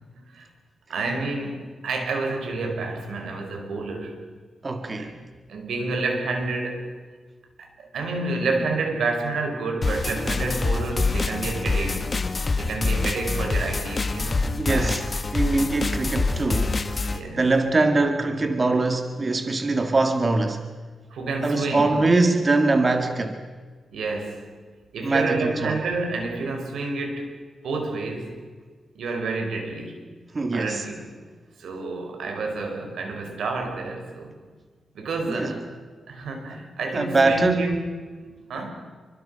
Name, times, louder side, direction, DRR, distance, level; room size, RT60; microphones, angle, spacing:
voice 1, 0.9-4.2 5.0-5.2 5.5-6.9 7.6-12.2 12.6-15.0 15.7-15.8 17.0-17.4 21.1-22.0 23.9-24.6 24.9-27.3 27.6-28.4 28.9-30.0 30.5-31.1 31.6-34.3 34.9-35.6 36.1-37.8 38.5-38.7, right 3 dB, 90° right, 5.1 m, -29 dB
voice 2, 4.6-5.2 14.6-15.0 15.3-20.7 21.4-23.4 25.0-25.8 30.3-30.9 35.3-35.6 36.9-37.8, right 3 dB, 30° right, 1.8 m, -23 dB
sound 1, 9.8-17.2, left 3 dB, 35° left, 1.7 m, -25 dB
27.5 x 24.0 x 5.7 m
wide cardioid pair, 110°, 0 cm